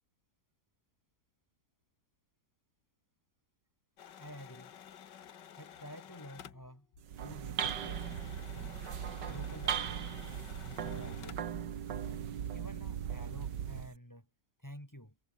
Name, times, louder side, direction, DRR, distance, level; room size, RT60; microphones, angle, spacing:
sound 1, 4.0-7.3 7.6-11.6, left 9 dB, 85° left, 1.9 m, -53 dB
voice 1, 4.2-4.8 5.5-6.9 7.2-8.8 9.3-10.1 10.6-11.4 12.0-12.3 12.5-14.3 14.6-15.2, equal, 10° left, 6.2 m, -51 dB
sound 2, 7.0-14.0, right 9 dB, 90° right, 2.0 m, -38 dB
omnidirectional pair, 1.8 m